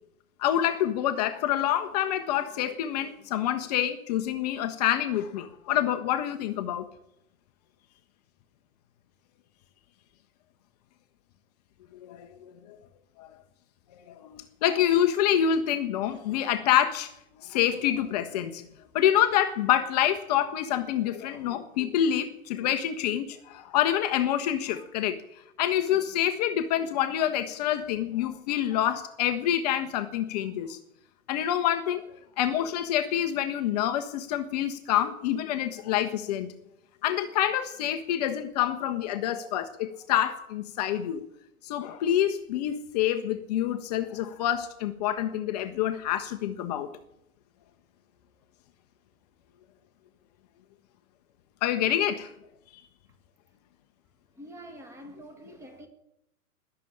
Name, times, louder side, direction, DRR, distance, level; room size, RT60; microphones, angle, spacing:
voice 1, 0.4-6.9 12.0-12.8 13.2-13.3 13.9-17.1 17.4-18.6 18.9-30.8 31.3-32.1 32.4-36.5 37.0-41.2 41.6-46.9 51.6-52.3 52.7-52.8, left 11 dB, 30° left, 0.8 m, -27 dB
voice 2, 54.3-55.9, right 1 dB, 5° right, 1.7 m, -46 dB
20.0 x 6.8 x 8.5 m
figure-of-eight pair, 120°, 43 cm